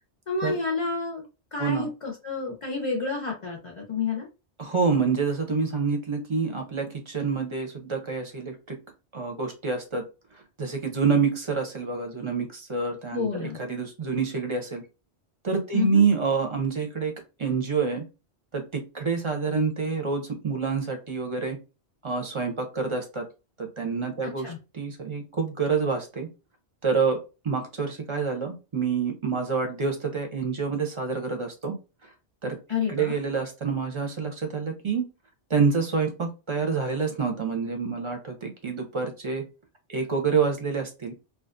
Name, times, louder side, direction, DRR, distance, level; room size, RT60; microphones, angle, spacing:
voice 1, 0.3-1.2 1.5-4.3 13.1-13.6 15.7-16.0 24.2-24.6 32.7-33.2, left 5 dB, 45° left, -1 dB, 0.4 m, -30 dB
voice 2, 4.6-8.8 9.1-10.0 10.6-14.8 15.4-17.1 17.4-18.0 18.5-21.6 22.0-23.2 23.6-26.3 26.8-27.2 27.4-31.7 32.4-32.6 32.9-35.1 35.5-39.4 39.9-41.1, right 5 dB, 40° right, 3 dB, 0.4 m, -27 dB
2.4 x 2.2 x 2.4 m, 0.29 s
omnidirectional pair, 1.2 m